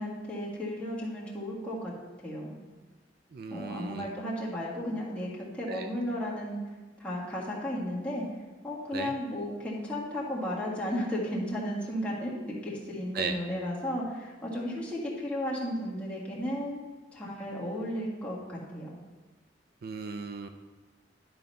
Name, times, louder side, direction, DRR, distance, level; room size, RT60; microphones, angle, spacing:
voice 1, 0.0-1.9 2.2-2.6 3.5-6.6 7.0-8.2 8.6-16.8 17.1-18.9, equal, 5° left, -7 dB, 1.7 m, -34 dB
voice 2, 3.3-4.1 5.7-5.9 8.9-9.1 13.1-13.4 19.8-20.5, right 4 dB, 55° right, 7 dB, 0.4 m, -36 dB
10.5 x 4.0 x 5.4 m, 1.3 s
head